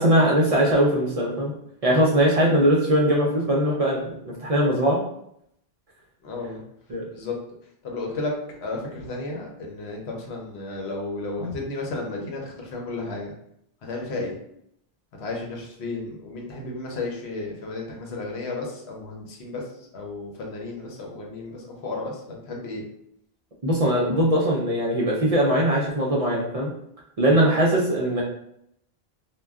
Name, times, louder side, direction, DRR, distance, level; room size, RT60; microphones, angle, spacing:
voice 1, 0.0-1.5 1.8-5.0 6.9-7.0 23.6-26.7 27.2-28.2, right 1 dB, 50° right, -3 dB, 0.5 m, -21 dB
voice 2, 6.2-6.6 7.1-7.4 7.8-8.3 8.6-13.3 13.8-14.3 15.2-19.6 19.9-22.8, left 3 dB, 90° left, 0 dB, 1.0 m, -33 dB
2.2 x 2.2 x 3.5 m, 0.73 s
omnidirectional pair, 1.0 m